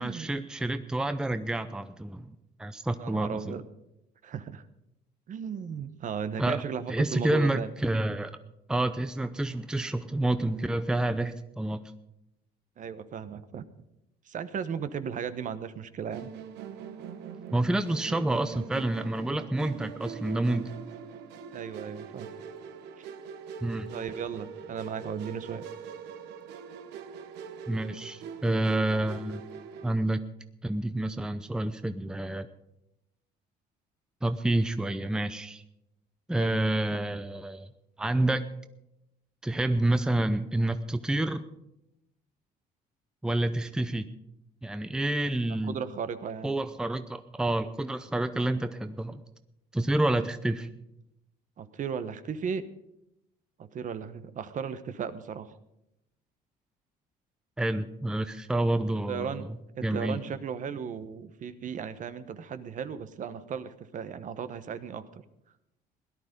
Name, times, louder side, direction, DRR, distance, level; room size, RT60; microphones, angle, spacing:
voice 1, 0.0-3.6 6.4-6.6 6.9-8.4 8.7-11.8 17.5-20.7 23.6-23.9 27.7-29.4 29.8-30.2 30.6-32.5 34.2-35.6 36.3-37.7 38.0-38.5 39.4-41.4 43.2-44.1 44.6-45.8 46.4-49.2 49.7-50.7 57.6-59.6 59.8-60.2, right 1 dB, 5° right, 10 dB, 0.6 m, -28 dB
voice 2, 3.0-3.6 4.2-4.6 5.3-7.7 12.8-13.6 14.2-16.3 21.5-22.3 23.0-23.1 23.9-25.6 36.4-36.6 45.7-46.6 51.6-52.6 53.6-55.6 59.1-59.5 59.8-65.2, right 7 dB, 50° right, 12 dB, 1.0 m, -36 dB
Musical instrument, 16.1-29.9, right 7 dB, 90° right, 1.1 m, -42 dB
17.5 x 11.5 x 5.2 m, 0.85 s
cardioid pair, 110°, 17 cm